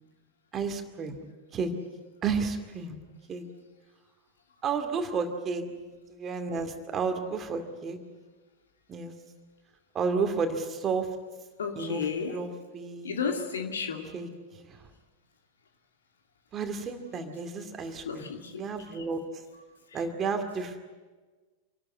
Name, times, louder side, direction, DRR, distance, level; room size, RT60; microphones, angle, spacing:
voice 1, 0.5-1.2 1.5-1.7 2.2-2.9 3.3-3.4 4.6-5.6 6.1-8.0 8.9-9.1 9.9-11.1 11.8-13.1 14.1-14.3 14.7-14.8 16.5-18.3 18.6-19.2 19.9-20.8, right 5 dB, 25° right, 6 dB, 2.3 m, -31 dB
voice 2, 11.6-12.4 13.0-14.1 18.0-18.6 19.0-19.1, left 6 dB, 65° left, 4 dB, 2.4 m, -32 dB
27.0 x 12.5 x 9.8 m, 1.3 s
figure-of-eight pair, 90°, 0 cm